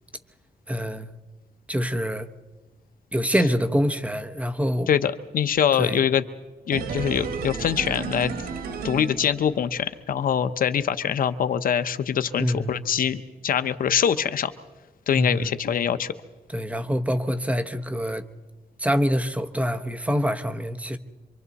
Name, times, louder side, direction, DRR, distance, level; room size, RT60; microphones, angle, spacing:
voice 1, 0.7-1.1 1.7-2.3 3.1-4.9 5.7-6.0 12.4-12.8 15.2-15.5 16.5-18.2 18.8-21.0, equal, 10° right, 1.0 m, -25 dB
voice 2, 4.9-6.2 6.7-8.3 8.8-14.5 15.1-16.1, left 8 dB, 65° left, 0.8 m, -24 dB
sound 1, 6.7-9.8 10.1-10.2, right 5 dB, 85° right, 1.8 m, -32 dB
27.0 x 24.5 x 4.1 m
cardioid pair, 115°, 15 cm